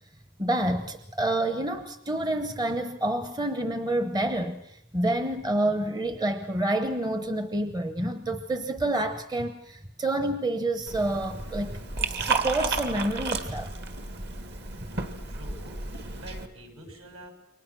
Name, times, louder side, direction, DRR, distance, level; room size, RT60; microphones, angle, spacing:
voice 1, 0.4-13.7, right 1 dB, 20° right, 9 dB, 0.9 m, -28 dB
Liquid, 10.9-16.5, right 4 dB, 50° right, 1.9 m, -32 dB
voice 2, 14.9-15.8 16.1-17.3, right 1 dB, 65° right, 4 dB, 7.5 m, -47 dB
28.5 x 24.0 x 6.1 m, 0.74 s
head